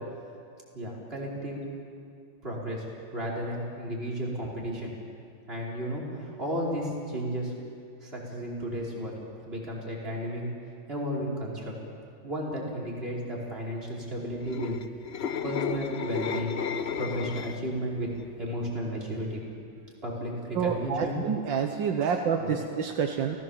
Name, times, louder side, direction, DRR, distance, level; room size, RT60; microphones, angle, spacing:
voice 1, 0.7-1.6 2.4-2.8 3.1-4.9 5.5-7.5 8.0-9.1 9.4-10.5 10.9-11.7 12.2-14.8 15.4-16.6 17.0-18.1 18.4-19.4 20.0-21.2 22.0-22.5, equal, 30° right, -4 dB, 5.0 m, -33 dB
sound 1, 14.3-17.8 18.2-18.5, left 7 dB, 85° left, 0.5 m, -33 dB
voice 2, 20.6-23.4, right 6 dB, 80° right, 4 dB, 1.8 m, -28 dB
29.5 x 17.0 x 7.3 m, 2.4 s
omnidirectional pair, 2.1 m